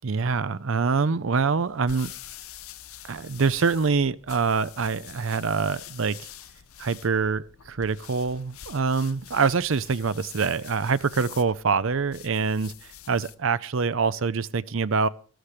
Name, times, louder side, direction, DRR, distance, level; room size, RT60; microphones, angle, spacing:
voice 1, 0.0-2.1 3.0-6.3 6.8-12.7 13.1-15.1, right 5 dB, 60° right, 0.5 m, -25 dB
sound 1, 1.6-13.5, left 10 dB, 75° left, 0.8 m, -46 dB
13.0 x 12.5 x 4.9 m
head